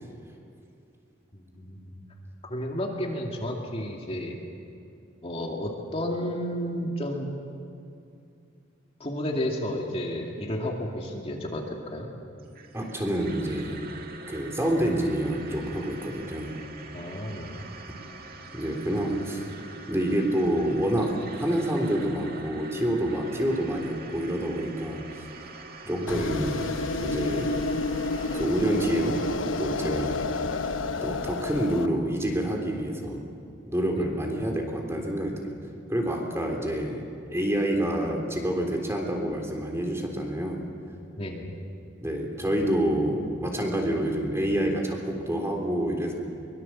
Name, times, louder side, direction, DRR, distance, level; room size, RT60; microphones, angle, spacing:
voice 1, 1.3-2.0 2.5-4.4 5.2-7.3 9.0-12.1 16.9-17.7 25.9-26.2 34.0-34.2 41.2-41.5, left 1 dB, 30° left, 0 dB, 2.4 m, -32 dB
sound 1, 12.4-29.4, right 3 dB, 50° right, 2.1 m, -45 dB
voice 2, 12.7-13.8 14.3-16.5 17.9-18.0 18.5-19.5 19.9-25.3 25.9-26.7 27.0-27.6 28.3-29.3 29.6-30.2 31.0-33.2 33.7-35.5 35.9-40.6 42.0-46.1, right 1 dB, 15° right, 1 dB, 3.6 m, -27 dB
sound 2, 26.1-31.9, left 3 dB, 90° left, 1.0 m, -30 dB
24.0 x 22.5 x 7.4 m, 2.6 s
head